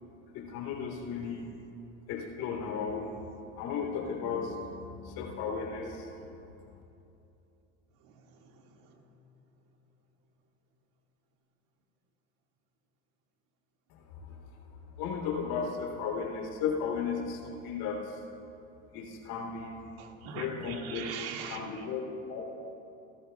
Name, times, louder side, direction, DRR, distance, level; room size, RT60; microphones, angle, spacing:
voice 1, 0.3-1.4 2.1-3.1 3.6-6.1 13.9-14.4 15.0-18.2 18.9-19.8 20.3-21.2 21.5-22.5, left 6 dB, 60° left, -1 dB, 3.2 m, -35 dB
voice 2, 8.0-8.5 8.8-9.0 20.0-21.6, right 6 dB, 60° right, 2 dB, 2.0 m, -42 dB
27.0 x 13.0 x 2.3 m, 2.8 s
hypercardioid pair, 90°, 41 cm